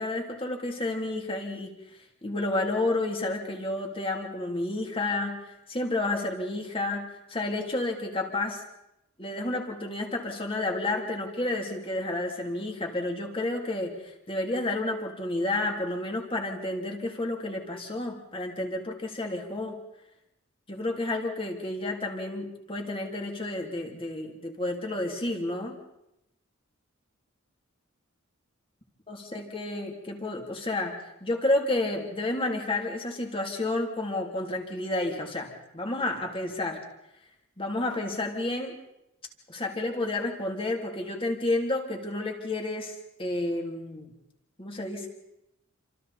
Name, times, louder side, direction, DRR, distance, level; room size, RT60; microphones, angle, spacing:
voice 1, 0.0-1.7 2.2-8.6 9.2-19.8 20.7-25.8 29.1-36.8 37.6-38.8 39.5-44.1 44.6-45.1, left 2 dB, 25° left, 2 dB, 3.1 m, -31 dB
28.5 x 26.5 x 4.3 m, 0.85 s
head